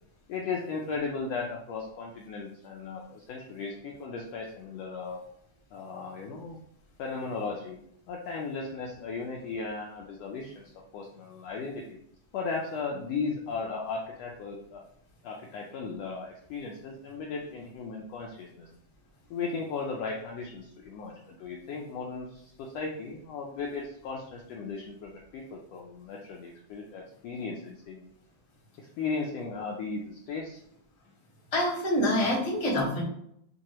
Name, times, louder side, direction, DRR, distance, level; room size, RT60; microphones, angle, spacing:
voice 1, 0.3-5.2 5.7-6.6 7.0-7.8 8.1-12.0 12.3-14.8 15.2-18.7 19.3-28.1 28.8-30.6, left 4 dB, 80° left, -1 dB, 1.5 m, -36 dB
voice 2, 31.5-33.0, left 1 dB, 25° left, -5 dB, 0.8 m, -26 dB
5.9 x 2.6 x 2.9 m, 0.72 s
omnidirectional pair, 3.4 m